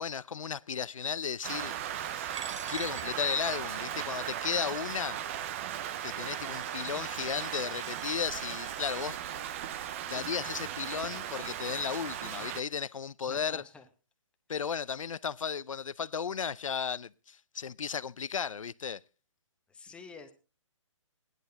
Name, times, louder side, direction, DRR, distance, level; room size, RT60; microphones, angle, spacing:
voice 1, 0.0-2.4 2.7-5.2 6.0-9.2 10.0-13.6 14.5-19.0, left 6 dB, 90° left, 0.6 m, -35 dB
Rain, 1.4-12.6, right 10 dB, 25° right, 0.5 m, -37 dB
Coin (dropping), 2.3-9.1, right 6 dB, 70° right, 1.0 m, -49 dB
voice 2, 13.3-13.8 19.7-20.3, left 5 dB, 5° left, 0.9 m, -49 dB
15.5 x 11.0 x 4.0 m
hypercardioid pair, 155°, 16 cm